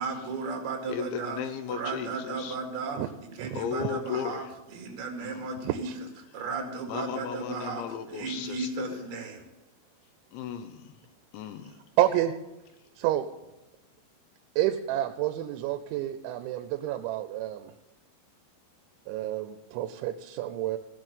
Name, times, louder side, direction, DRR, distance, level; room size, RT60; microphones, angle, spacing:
voice 1, 0.0-1.4 1.7-5.9 6.3-9.4, right 4 dB, 65° right, 3 dB, 3.6 m, -35 dB
voice 2, 0.9-2.6 3.5-4.5 5.2-5.5 6.9-9.1 10.3-10.9 11.3-11.8, left 8 dB, 80° left, 9 dB, 3.1 m, -36 dB
voice 3, 5.6-6.0 12.0-12.3 13.0-13.3 14.6-17.7 19.1-20.8, right 13 dB, 85° right, 9 dB, 3.0 m, -29 dB
16.5 x 6.2 x 8.9 m, 0.98 s
omnidirectional pair, 5.2 m